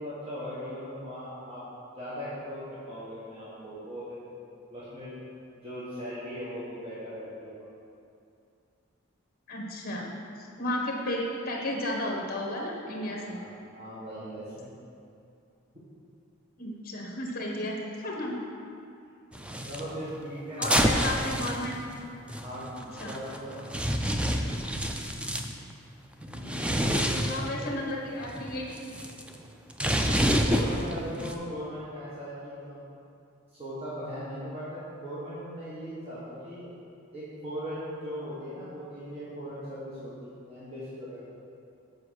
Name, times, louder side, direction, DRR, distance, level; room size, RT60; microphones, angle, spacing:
voice 1, 0.0-1.6 1.9-4.2 4.7-5.1 5.6-7.6 13.2-13.5 13.7-14.7 19.6-20.9 22.4-22.7 23.0-23.7 26.2-27.8 30.4-32.8 33.5-36.7 37.1-41.2, equal, 25° right, -11 dB, 1.5 m, -39 dB
voice 2, 9.5-10.1 10.4-13.4 16.6-18.4 20.6-21.8 23.0-23.1 24.1-24.5 27.3-28.6, left 1 dB, 45° left, -1 dB, 1.3 m, -33 dB
sound 1, 19.3-19.8 20.6-25.5 26.2-27.6 28.1-31.3, equal, 5° right, 0.3 m, -28 dB
7.5 x 5.1 x 6.4 m, 2.5 s
head